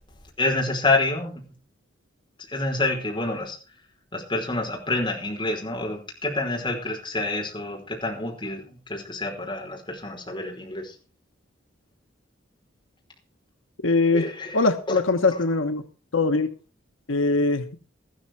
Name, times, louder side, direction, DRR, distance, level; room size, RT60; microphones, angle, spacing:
voice 1, 0.4-1.4 2.5-3.6 4.1-10.9 14.1-15.0 15.3-15.7, left 2 dB, 25° left, 0 dB, 5.1 m, -28 dB
voice 2, 13.8-14.2 14.5-15.8 16.1-16.5 17.1-17.8, left 3 dB, 80° left, 7 dB, 1.2 m, -22 dB
14.5 x 13.5 x 4.6 m, 0.33 s
head